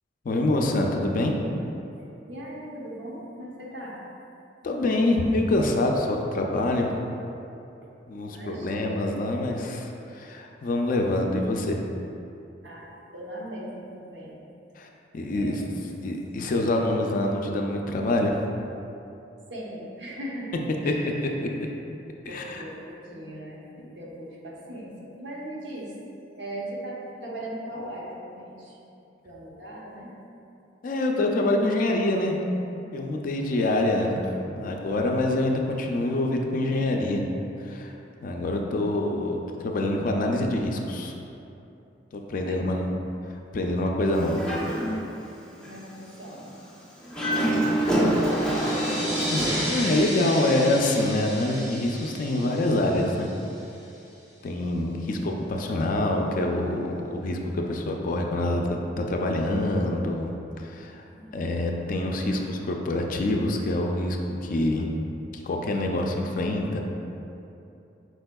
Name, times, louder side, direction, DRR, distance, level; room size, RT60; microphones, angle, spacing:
voice 1, 0.2-1.3 4.6-7.1 8.1-11.8 14.8-14.9 15.1-15.6 16.0-18.4 20.8-21.3 22.3-22.6 30.8-32.4 32.9-34.2 34.5-37.2 37.6-37.9 38.2-41.1 42.1-42.9 43.2-44.6 48.3-48.6 49.3-53.3 54.4-60.3 60.6-61.0 61.3-64.9 65.3-66.8, left 1 dB, 45° left, 2 dB, 0.4 m, -26 dB
voice 2, 2.3-4.0 8.2-9.1 10.0-10.1 12.6-12.9 13.1-14.4 15.3-15.6 19.5-20.5 20.8-21.4 22.3-25.9 26.3-28.8 29.2-30.1 42.4-42.8 45.6-46.5 48.0-48.8 61.1-61.3, right 1 dB, 70° right, -4 dB, 0.8 m, -39 dB
Dog, 44.1-45.2 45.6-45.8 47.0-49.7, right 1 dB, 5° left, 0.6 m, -26 dB
sound 1, 47.6-53.9, equal, 35° right, 1.3 m, -34 dB
4.7 x 4.3 x 2.2 m, 2.8 s
head